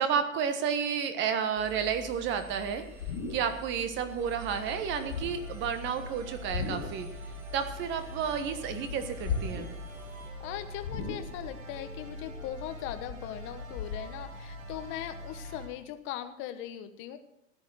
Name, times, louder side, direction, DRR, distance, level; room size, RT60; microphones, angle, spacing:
voice 1, 0.0-2.8 3.3-7.1 7.5-9.8, right 7 dB, 30° right, 9 dB, 1.4 m, -31 dB
Engine, 1.6-10.3, left 3 dB, 5° right, 1.6 m, -49 dB
sound 1, 2.7-3.8 4.1-4.4 4.9-5.6 6.3-7.1 7.4-8.4 8.7-9.9 10.2-10.3 10.8-11.6 12.0-14.0, left 5 dB, 50° left, 2.6 m, -37 dB
sound 2, 4.2-15.7, equal, 90° right, 3.8 m, -43 dB
voice 2, 10.4-17.2, left 11 dB, 30° left, 9 dB, 1.2 m, -39 dB
13.5 x 9.4 x 6.4 m, 0.78 s
hypercardioid pair, 125°, 40 cm